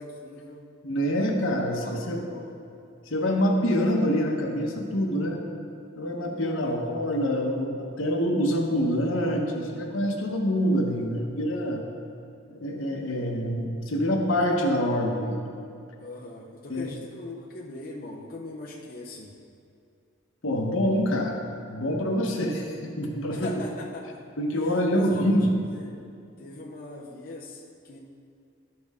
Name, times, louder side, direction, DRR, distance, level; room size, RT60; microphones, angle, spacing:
voice 1, 0.0-0.7 1.1-1.3 1.8-2.5 6.6-6.9 16.0-19.3 23.3-24.2 24.5-25.4 25.8-25.9 26.4-28.0, left 2 dB, 45° left, -3 dB, 0.7 m, -41 dB
voice 2, 0.8-2.2 3.1-5.4 6.0-11.8 12.5-15.5 16.7-16.9 20.4-21.4 21.7-23.5 24.4-25.5, equal, 75° left, 1 dB, 1.1 m, -26 dB
11.5 x 6.2 x 3.6 m, 2.5 s
head